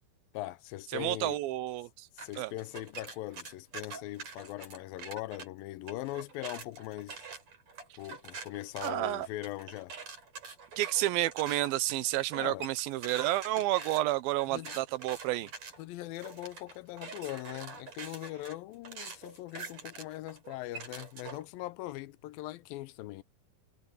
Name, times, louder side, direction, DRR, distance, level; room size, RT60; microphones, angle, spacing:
voice 1, 0.3-1.4 2.1-7.3 8.0-9.9 12.4-12.7 13.6-13.7 14.5-14.8 15.8-23.2, left 16 dB, 80° left, 2.4 m, -41 dB
voice 2, 0.9-2.1 2.4-2.5 8.8-9.3 10.8-15.5, right 16 dB, 85° right, 2.7 m, -30 dB
sound 1, 2.2-5.5 5.9-21.5, right 5 dB, 50° right, 5.6 m, -45 dB
omnidirectional pair, 4.2 m